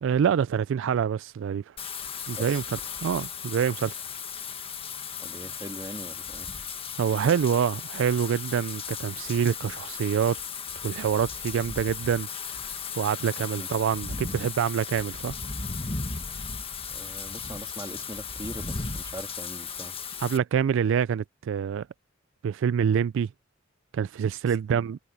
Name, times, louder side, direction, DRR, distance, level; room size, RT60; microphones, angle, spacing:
voice 1, 0.0-1.8 2.3-4.0 7.0-10.4 10.8-12.3 13.0-15.4 20.2-21.9 22.4-23.3 23.9-25.0, right 7 dB, 70° right, 0.3 m, -26 dB
Wind / Rain, 1.8-20.4, left 5 dB, 30° left, 1.4 m, -36 dB
voice 2, 5.2-6.5 13.5-13.7 16.9-20.0 24.5-24.9, right 1 dB, 20° right, 2.4 m, -41 dB
head